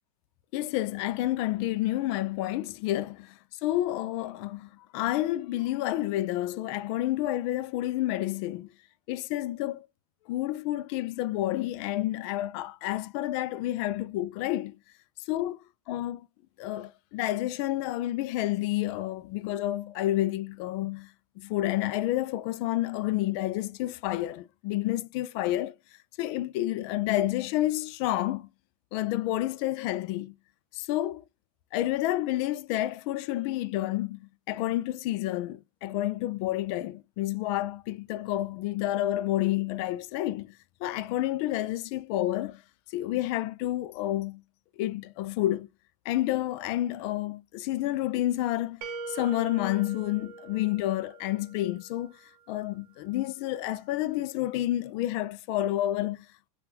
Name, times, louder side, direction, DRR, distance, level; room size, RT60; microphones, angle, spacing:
voice 1, 0.5-8.7 9.1-9.9 10.3-14.8 15.3-15.6 15.9-16.3 16.6-25.7 26.2-28.5 28.9-30.3 30.7-31.2 31.7-40.5 40.8-42.6 42.9-44.4 44.8-45.7 46.1-52.2 52.5-56.3, left 15 dB, 50° left, 0.4 m, -29 dB
sound 1, 48.8-51.7, right 3 dB, 85° right, 0.6 m, -41 dB
3.7 x 2.3 x 2.6 m
supercardioid pair, 135°, 19 cm